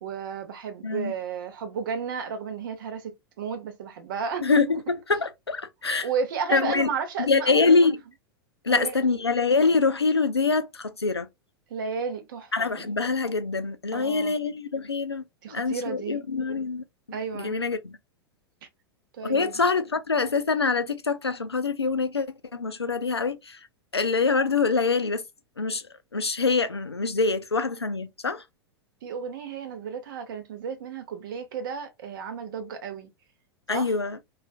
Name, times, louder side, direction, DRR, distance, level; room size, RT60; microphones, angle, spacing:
voice 1, 0.0-4.6 6.0-7.7 8.7-9.0 11.7-12.9 13.9-14.4 15.4-16.3 17.1-17.6 19.1-19.6 29.0-33.1 33.7-33.9, right 6 dB, 55° right, 0.7 m, -33 dB
voice 2, 5.1-6.1 6.5-6.9 7.3-8.0 8.7-11.3 12.5-15.2 15.5-16.8 17.3-17.9 19.2-22.3 22.5-23.6 23.9-25.2 25.6-25.8 26.1-28.4 33.7-34.2, left 4 dB, 85° left, 0.4 m, -24 dB
2.4 x 2.3 x 2.2 m
figure-of-eight pair, 90°, 13 cm